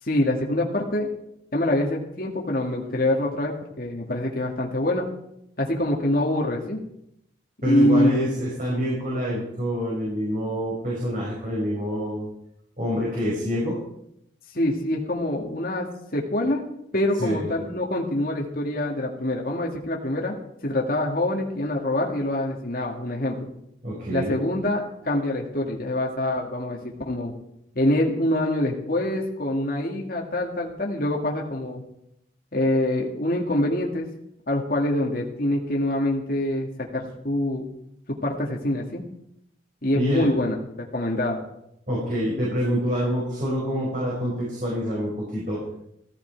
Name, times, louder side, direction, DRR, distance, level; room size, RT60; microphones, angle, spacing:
voice 1, 0.0-1.1 1.5-5.1 5.6-6.8 7.6-8.2 14.5-15.9 16.1-16.6 16.9-20.4 20.6-23.5 24.1-27.3 27.8-31.8 32.5-34.1 34.5-37.7 38.1-39.0 39.8-40.6 40.9-41.4, left 1 dB, 50° left, -1 dB, 2.0 m, -25 dB
voice 2, 7.6-12.3 12.8-13.8 17.2-17.5 23.8-24.3 39.9-40.3 41.9-45.6, equal, 45° right, -5 dB, 5.2 m, -26 dB
16.0 x 15.0 x 4.6 m, 0.77 s
head